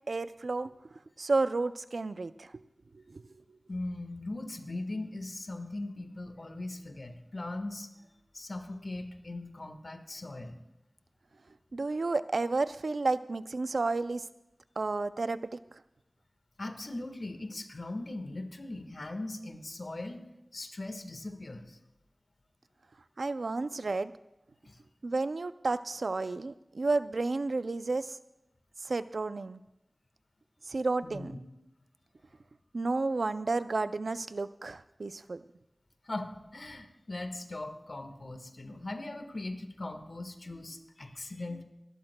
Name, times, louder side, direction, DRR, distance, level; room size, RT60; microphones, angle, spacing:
voice 1, 0.1-0.7 1.2-2.5 2.9-3.2 11.7-14.2 14.8-15.4 23.2-24.1 25.0-28.2 28.8-29.6 30.7-31.4 32.7-35.4 41.5-41.6, right 3 dB, 90° right, 13 dB, 0.4 m, -31 dB
voice 2, 3.7-7.9 8.3-10.6 16.6-20.2 20.5-21.8 24.6-24.8 31.0-31.4 36.0-41.6, left 2 dB, 65° left, 6 dB, 1.4 m, -40 dB
26.5 x 12.5 x 2.2 m, 0.90 s
wide cardioid pair, 40°, 0 cm